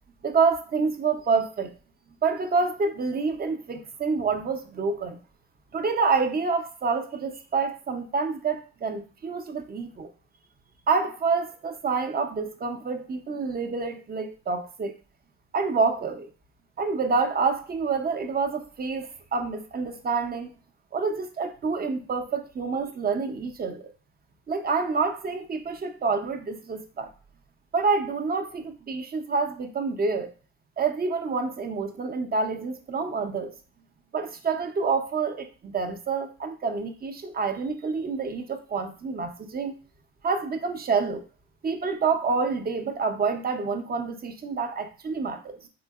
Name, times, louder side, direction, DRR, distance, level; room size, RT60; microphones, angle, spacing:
voice 1, 0.2-1.7 2.2-5.2 5.7-10.1 10.9-14.9 15.5-16.3 16.8-20.5 20.9-23.9 24.5-27.1 27.7-30.3 30.8-33.5 34.1-39.7 40.2-41.2 41.6-45.7, right 4 dB, 30° right, 0.5 m, -27 dB
3.8 x 2.7 x 2.3 m
cardioid pair, 90°, 30 cm